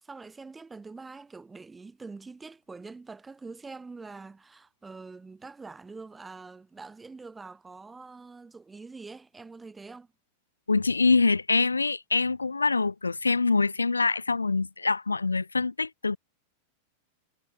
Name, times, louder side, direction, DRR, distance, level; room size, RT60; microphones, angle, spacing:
voice 1, 0.0-10.1, right 4 dB, 10° right, 2.2 m, -45 dB
voice 2, 10.7-16.2, left 4 dB, 80° left, 0.4 m, -25 dB
figure-of-eight pair, 90°, 0 cm